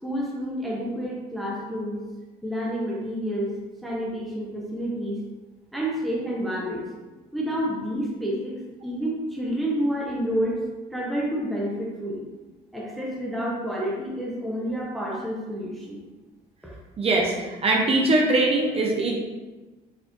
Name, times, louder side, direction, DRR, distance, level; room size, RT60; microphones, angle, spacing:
voice 1, 0.0-2.0 2.4-3.5 3.8-5.2 5.7-6.8 7.3-8.6 8.8-10.6 10.9-12.2 12.7-16.0, equal, ahead, -4 dB, 0.6 m, -29 dB
voice 2, 17.0-19.2, right 2 dB, 35° right, 0 dB, 0.5 m, -22 dB
4.0 x 2.5 x 3.0 m, 1.2 s
cardioid pair, 110°, 17 cm